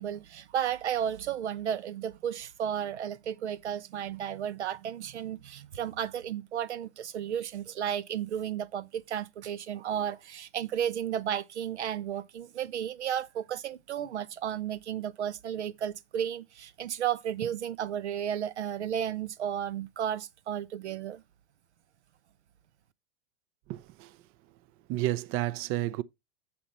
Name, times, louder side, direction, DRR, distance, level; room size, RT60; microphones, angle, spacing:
voice 1, 0.0-21.2, right 9 dB, 90° right, 0.7 m, -33 dB
voice 2, 23.7-24.2 24.9-26.0, right 15 dB, 40° right, 0.5 m, -31 dB
7.1 x 7.0 x 4.2 m
hypercardioid pair, 105°, 33 cm